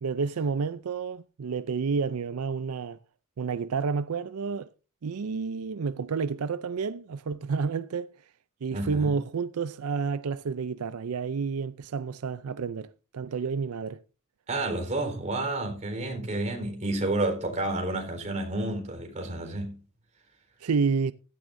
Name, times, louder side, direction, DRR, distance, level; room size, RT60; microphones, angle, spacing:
voice 1, 0.0-3.0 3.4-4.7 5.0-8.1 8.6-14.0 20.6-21.1, right 5 dB, 90° right, 0.5 m, -30 dB
voice 2, 8.7-9.2 14.5-19.8, right 2 dB, 35° right, 4.1 m, -30 dB
15.5 x 14.0 x 2.6 m
head